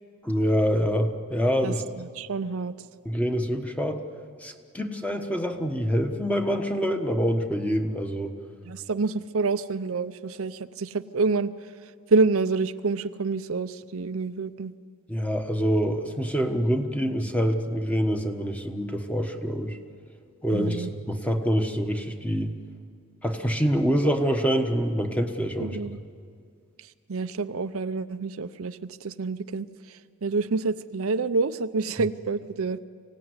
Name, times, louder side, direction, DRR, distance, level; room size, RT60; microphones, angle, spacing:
voice 1, 0.2-1.8 3.0-4.0 4.4-8.3 15.1-19.8 20.4-22.5 23.2-26.0, equal, 5° left, 5 dB, 1.3 m, -26 dB
voice 2, 1.6-2.7 8.6-11.5 12.1-14.7 20.5-20.9 25.6-26.0 27.1-29.7 30.2-32.8, right 4 dB, 70° right, 11 dB, 0.6 m, -27 dB
25.0 x 17.0 x 9.6 m, 2.2 s
head